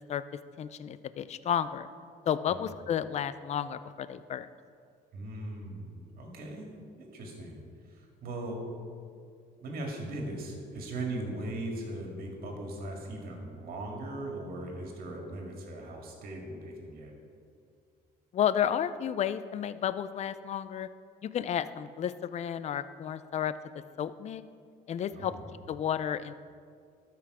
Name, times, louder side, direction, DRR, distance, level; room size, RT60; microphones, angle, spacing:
voice 1, 0.6-1.9 2.3-4.5 18.3-20.9 21.2-23.5 24.0-24.4 24.9-25.3 25.7-26.3, left 9 dB, 40° left, 14 dB, 0.4 m, -32 dB
voice 2, 5.1-6.7 7.0-7.6 7.9-8.6 9.6-17.1 25.1-25.5, right 1 dB, 60° right, 1 dB, 2.2 m, -39 dB
12.5 x 5.9 x 4.9 m, 2.3 s
cardioid pair, 110°, 17 cm